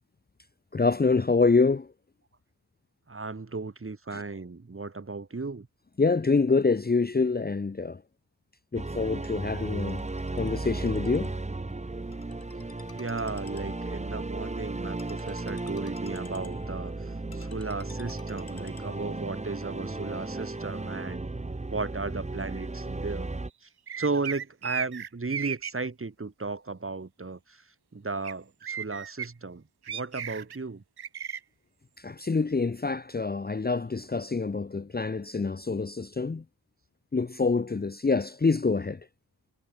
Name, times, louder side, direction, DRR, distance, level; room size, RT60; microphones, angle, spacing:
voice 1, 0.7-1.9 4.1-4.2 6.0-8.0 8.7-10.0 10.3-11.3 32.0-36.4 37.1-39.0, left 4 dB, 25° left, 0.8 m, -26 dB
voice 2, 3.1-5.7 13.0-16.9 17.3-21.2 21.7-23.3 24.0-27.6 27.9-30.8, right 3 dB, 35° right, 4.2 m, -35 dB
sound 1, 8.7-23.5, right 2 dB, 20° right, 1.3 m, -35 dB
Ringtone, 9.8-19.4, left 6 dB, 75° left, 5.0 m, -53 dB
sound 2, 23.9-25.7 28.2-28.3 28.6-29.3 29.9-30.6 31.0-31.4, right 8 dB, 90° right, 1.6 m, -35 dB
wide cardioid pair, 125°, 38 cm